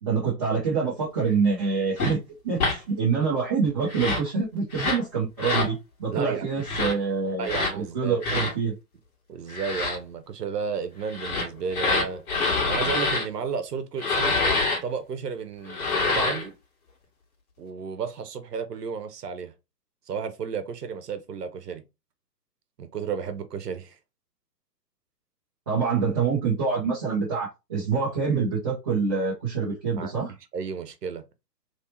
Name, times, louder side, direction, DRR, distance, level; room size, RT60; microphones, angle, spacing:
voice 1, 0.0-7.5 7.7-8.7 25.7-30.3, right 5 dB, 15° right, 0.5 m, -26 dB
sound 1, 2.0-2.1 2.6-2.8 3.9-4.3 4.7-5.0 5.4-5.7 6.6-6.9 7.4-7.7 8.2-8.5 9.5-10.0 11.1-13.3 14.0-14.8 15.7-16.5, left 3 dB, 60° left, 1.8 m, -26 dB
voice 2, 6.1-6.6 7.4-8.2 9.3-12.2 12.6-14.4 14.8-16.5 17.6-19.5 20.1-21.8 22.8-23.9 30.0-30.1 30.5-31.2, right 6 dB, 70° right, 0.9 m, -32 dB
3.2 x 2.8 x 2.9 m
figure-of-eight pair, 130°, 50 cm